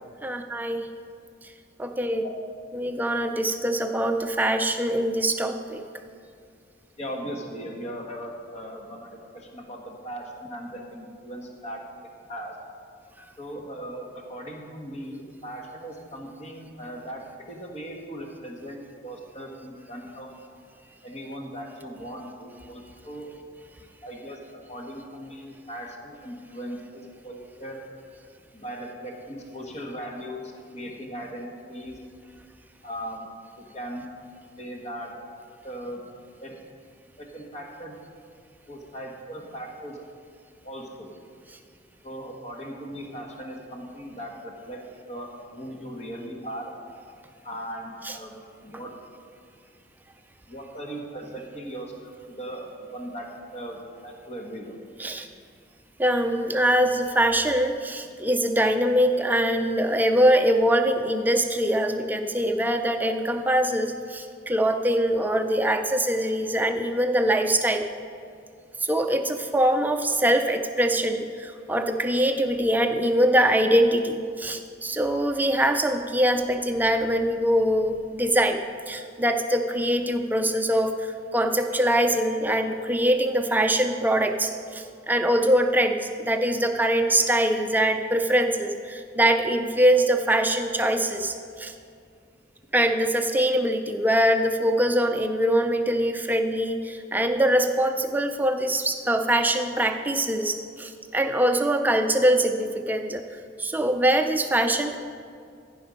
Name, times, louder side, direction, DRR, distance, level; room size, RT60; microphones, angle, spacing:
voice 1, 0.2-0.9 1.8-2.2 2.7-5.8 48.0-48.2 55.0-55.3 56.0-67.9 68.8-78.6 78.9-91.7 92.7-103.2 103.6-105.0, right 1 dB, 10° right, 6 dB, 0.5 m, -23 dB
voice 2, 7.0-11.8 12.3-12.5 13.4-20.3 21.0-23.3 24.0-24.4 24.7-27.8 28.5-32.0 32.8-33.3 33.6-34.1 34.6-35.1 35.6-36.0 36.4-36.6 37.2-38.0 38.7-40.0 40.6-41.1 42.0-44.8 45.1-46.7 47.4-48.9 50.5-54.8, equal, 35° left, 1 dB, 1.4 m, -38 dB
14.5 x 5.3 x 5.2 m, 2.3 s
head